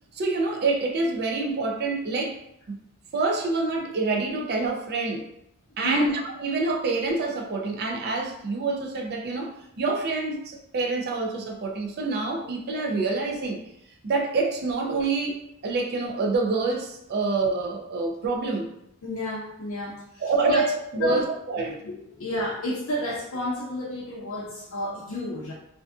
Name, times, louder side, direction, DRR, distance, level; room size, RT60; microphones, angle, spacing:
voice 1, 0.1-2.4 2.7-2.8 3.1-5.3 5.8-13.6 14.0-18.7 20.2-20.7 20.9-21.8, right 3 dB, 50° right, 1 dB, 0.4 m, -27 dB
voice 2, 5.8-6.1 19.0-20.6 21.0-25.5, left 1 dB, 65° left, -5 dB, 0.5 m, -31 dB
2.5 x 2.4 x 2.4 m, 0.77 s
head